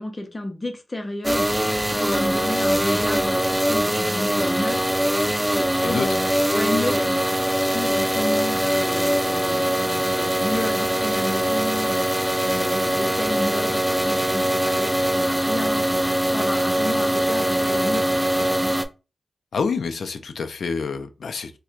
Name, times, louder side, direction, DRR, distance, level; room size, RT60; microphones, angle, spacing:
voice 1, 0.0-4.8 5.6-7.2 7.6-18.2 18.6-18.8, left 1 dB, 25° left, 0.7 m, -31 dB
sound 1, 1.2-18.8, right 1 dB, 5° right, 0.3 m, -22 dB
voice 2, 5.8-6.2 19.5-21.5, left 5 dB, 80° left, 0.4 m, -27 dB
4.3 x 2.2 x 2.4 m
wide cardioid pair, 105°, 0 cm